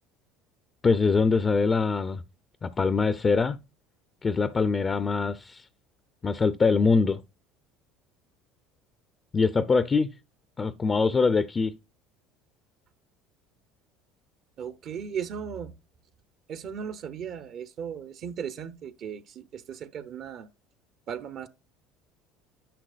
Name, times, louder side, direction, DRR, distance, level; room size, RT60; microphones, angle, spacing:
voice 1, 0.8-2.2 2.6-3.6 4.2-5.7 6.2-7.2 9.3-10.1 10.6-11.7, left 4 dB, 25° left, 0.6 m, -23 dB
voice 2, 14.6-15.7 16.5-20.5 21.1-21.5, right 7 dB, 55° right, 0.8 m, -36 dB
10.0 x 6.0 x 2.4 m
supercardioid pair, 95°, 0 cm